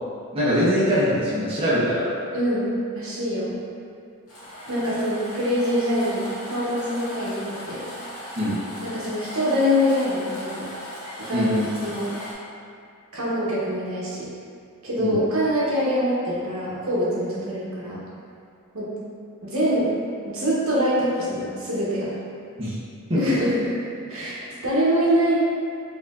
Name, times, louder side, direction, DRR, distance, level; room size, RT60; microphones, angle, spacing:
voice 1, 0.3-2.0 8.3-8.6 11.3-11.6 15.0-15.1 22.6-22.7 23.1-23.2, equal, 25° right, -10 dB, 0.8 m, -22 dB
voice 2, 2.3-2.7 2.9-3.6 4.7-7.8 8.8-10.7 11.2-11.5 11.8-12.1 13.1-14.3 14.8-18.0 18.7-18.9 19.4-19.9 20.2-22.1 23.1-23.7 24.1-25.4, equal, 75° right, -8 dB, 1.0 m, -24 dB
sound 1, 4.3-12.3, equal, 80° left, 1.0 m, -38 dB
4.2 x 2.7 x 2.4 m, 2.4 s
head